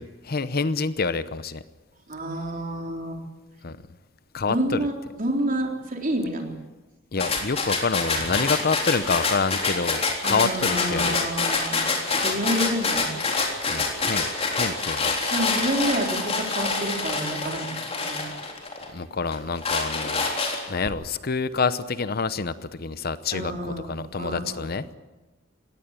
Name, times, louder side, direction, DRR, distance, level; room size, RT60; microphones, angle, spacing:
voice 1, 0.0-1.6 3.6-3.8 4.3-4.9 7.1-11.3 13.7-14.3 14.5-15.1 18.9-20.3 20.7-24.9, left 4 dB, 50° left, 14 dB, 0.8 m, -27 dB
voice 2, 2.1-3.2 4.4-6.5 8.1-8.5 10.2-11.8 12.2-13.1 15.3-18.3 23.3-23.9 24.2-24.6, right 1 dB, 45° right, 2 dB, 3.8 m, -29 dB
sound 1, 7.2-18.9 19.3-20.9, left 4 dB, 30° left, 3.7 m, -26 dB
20.0 x 16.5 x 9.0 m, 1.2 s
head